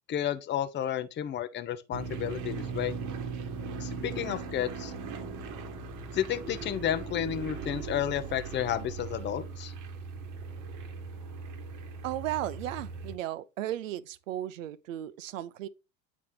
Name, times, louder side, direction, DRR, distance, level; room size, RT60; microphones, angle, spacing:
voice 1, 0.1-3.0 3.8-4.9 6.1-9.7, left 10 dB, 30° left, 0.7 m, -32 dB
sound 1, 1.9-13.2, right 5 dB, 50° right, 1.2 m, -39 dB
voice 2, 12.0-15.7, right 13 dB, 75° right, 0.6 m, -35 dB
9.1 x 4.2 x 3.3 m
hypercardioid pair, 75°, 39 cm